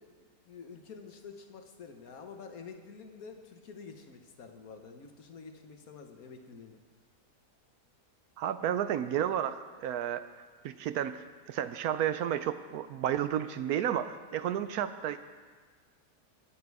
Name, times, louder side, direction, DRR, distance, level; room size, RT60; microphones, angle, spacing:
voice 1, 0.0-6.8, left 5 dB, 65° left, 5 dB, 1.5 m, -48 dB
voice 2, 8.4-10.2 10.6-15.2, right 10 dB, 75° right, 11 dB, 1.0 m, -32 dB
22.0 x 7.6 x 4.7 m, 1.5 s
omnidirectional pair, 1.7 m